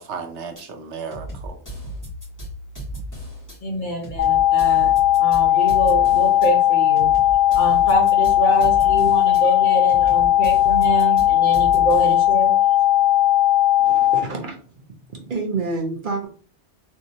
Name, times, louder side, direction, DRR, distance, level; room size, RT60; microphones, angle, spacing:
voice 1, 0.0-1.6 5.1-5.3 7.3-7.6 8.8-8.9 9.3-9.5 10.4-10.5 11.0-11.2 12.4-12.5, right 5 dB, 80° right, 5 dB, 1.0 m, -36 dB
sound 1, 0.6-0.7 1.1-3.6 4.0-6.5 7.0-9.4 9.9-12.3, equal, 15° left, 1.7 m, -35 dB
voice 2, 3.6-4.9 5.2-7.1 7.5-12.5, right 1 dB, 50° left, 1 dB, 1.0 m, -26 dB
sound 2, 4.2-14.2, left 13 dB, 80° left, 1.0 m, -17 dB
voice 3, 13.8-14.6 15.1-16.3, right 3 dB, 50° right, 2 dB, 0.9 m, -28 dB
3.6 x 3.0 x 2.7 m, 0.41 s
omnidirectional pair, 1.1 m